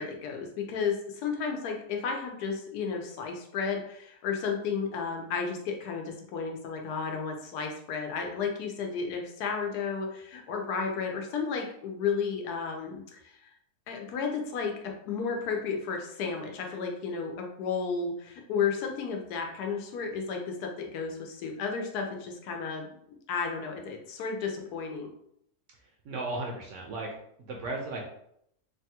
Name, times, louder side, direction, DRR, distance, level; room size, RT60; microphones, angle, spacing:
voice 1, 0.0-13.2 13.9-14.7 15.1-22.9 23.3-25.1, left 5 dB, 85° left, 2 dB, 1.2 m, -33 dB
voice 2, 25.8-27.1 27.4-28.1, right 2 dB, 65° right, 0 dB, 0.8 m, -36 dB
3.3 x 2.3 x 2.8 m, 0.73 s
omnidirectional pair, 1.6 m